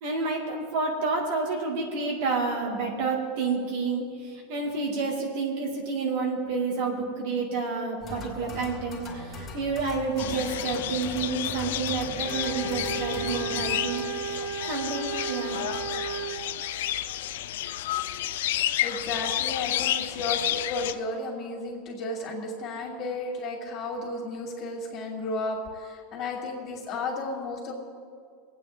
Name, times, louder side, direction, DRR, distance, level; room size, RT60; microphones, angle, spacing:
voice 1, 0.0-14.0 14.7-15.6, right 4 dB, 65° right, 0 dB, 2.5 m, -29 dB
sound 1, 8.0-14.0, left 3 dB, 20° left, 2.5 m, -41 dB
sound 2, 10.2-20.9, left 13 dB, 80° left, 0.4 m, -31 dB
sound 3, 12.2-16.4, right 6 dB, 80° right, 1.8 m, -34 dB
voice 2, 18.8-27.7, left 2 dB, 40° left, -1 dB, 2.7 m, -33 dB
26.0 x 8.9 x 3.7 m, 2.2 s
supercardioid pair, 145°, 0 cm